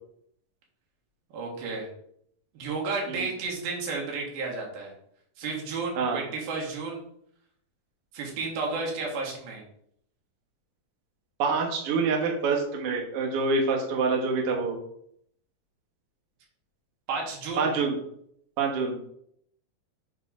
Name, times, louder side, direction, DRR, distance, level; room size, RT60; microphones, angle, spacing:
voice 1, 1.3-1.9 2.5-4.9 5.4-7.0 8.1-9.6 17.1-17.7, right 4 dB, 85° right, -2 dB, 3.3 m, -32 dB
voice 2, 11.4-14.8 17.6-18.0 18.6-18.9, right 4 dB, 55° right, 0 dB, 1.7 m, -26 dB
6.7 x 3.6 x 4.8 m, 0.69 s
omnidirectional pair, 4.1 m